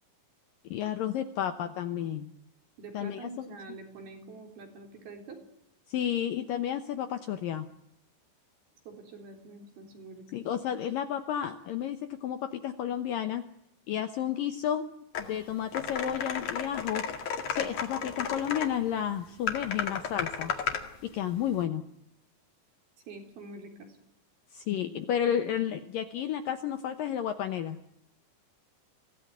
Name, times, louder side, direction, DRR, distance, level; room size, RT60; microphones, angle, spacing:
voice 1, 0.7-2.3 2.9-3.5 5.9-7.7 10.3-13.4 13.9-14.9 15.2-17.1 17.5-20.5 21.0-21.8 24.5-27.8, left 10 dB, 70° left, 8 dB, 2.2 m, -31 dB
voice 2, 2.8-5.4 8.9-10.3 23.1-24.0, right 3 dB, 60° right, 3 dB, 5.4 m, -46 dB
sound 1, 15.2-15.3 15.7-18.7 19.5-20.9, left 7 dB, 50° left, 3.1 m, -33 dB
24.5 x 17.0 x 9.5 m, 0.78 s
omnidirectional pair, 5.1 m